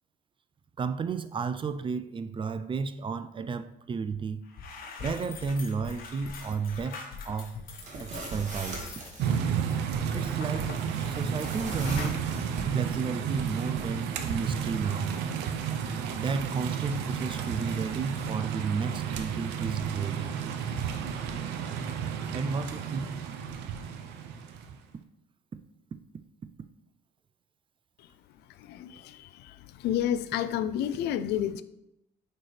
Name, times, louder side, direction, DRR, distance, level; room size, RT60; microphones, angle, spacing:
voice 1, 0.8-4.4 5.0-9.0 10.1-10.8 11.1-12.3 12.7-15.2 16.2-20.4 22.3-23.2, right 5 dB, 30° right, 0.5 m, -33 dB
sound 1, 4.1-4.2 4.5-11.6 11.8-12.2, left 4 dB, 60° left, 1.3 m, -43 dB
sound 2, 7.7-9.4 10.9-12.7, right 2 dB, 45° right, 1.8 m, -40 dB
sound 3, 9.2-24.7, right 7 dB, 85° right, 0.7 m, -32 dB
voice 2, 28.5-31.6, left 10 dB, 75° left, 0.5 m, -30 dB
8.9 x 4.4 x 3.3 m
cardioid pair, 110°, 17 cm